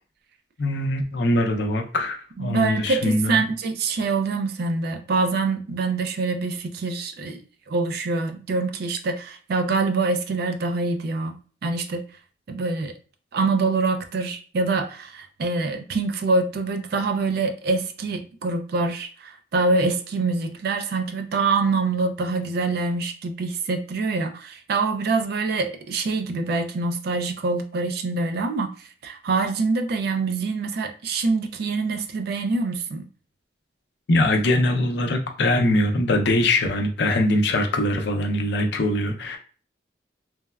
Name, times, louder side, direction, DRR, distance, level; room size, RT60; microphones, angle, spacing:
voice 1, 0.6-3.4 34.1-39.4, left 1 dB, 65° left, 4 dB, 0.5 m, -22 dB
voice 2, 2.4-7.4 7.7-11.3 11.6-12.0 12.5-12.9 13.3-28.7 29.0-33.0, right 3 dB, 60° right, 6 dB, 0.4 m, -25 dB
3.3 x 2.0 x 2.2 m, 0.39 s
head